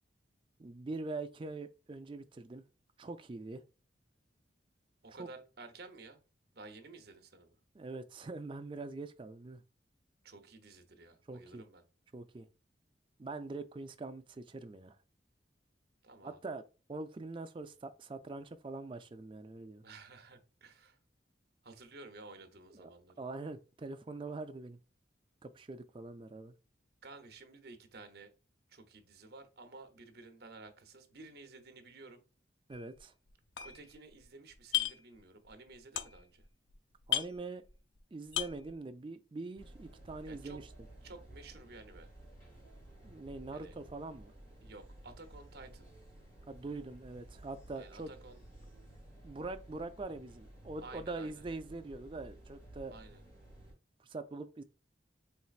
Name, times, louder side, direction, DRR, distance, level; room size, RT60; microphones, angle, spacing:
voice 1, 0.6-2.6 3.0-3.6 5.2-5.3 7.7-9.6 11.3-11.6 12.1-12.5 13.2-15.0 16.2-16.6 16.9-19.8 22.7-22.9 23.2-24.8 25.4-26.5 32.7-33.1 37.1-37.6 38.1-40.6 43.0-44.3 46.5-48.1 49.2-52.9 54.0-54.6, right 3 dB, 25° right, 0.3 m, -43 dB
voice 2, 5.0-6.2 6.5-7.6 10.2-11.8 16.0-16.4 19.8-21.0 21.6-23.2 27.0-28.3 28.7-32.2 33.6-36.5 40.3-40.6 41.0-42.1 43.5-43.7 44.6-45.9 47.8-48.4 50.8-51.4 52.9-53.2, right 3 dB, 55° right, 0.8 m, -53 dB
sound 1, 32.7-33.0 33.3-34.2 34.5-35.2 35.5-36.4 36.7-36.8 37.0-38.0 38.3-38.7, left 12 dB, 85° left, 0.5 m, -35 dB
sound 2, 39.6-53.7, right 1 dB, 15° left, 2.2 m, -54 dB
4.4 x 3.2 x 2.4 m
head